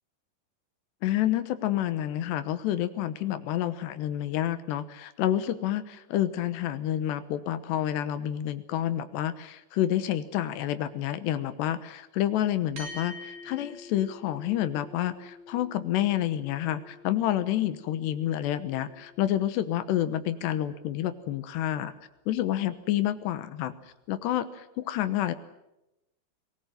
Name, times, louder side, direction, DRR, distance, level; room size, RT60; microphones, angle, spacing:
voice 1, 1.0-21.9 22.3-23.7 24.1-25.4, left 12 dB, 80° left, 12 dB, 3.2 m, -29 dB
sound 1, 12.8-21.4, left 2 dB, 70° right, 7.1 m, -48 dB
24.0 x 18.5 x 9.3 m, 0.91 s
omnidirectional pair, 5.0 m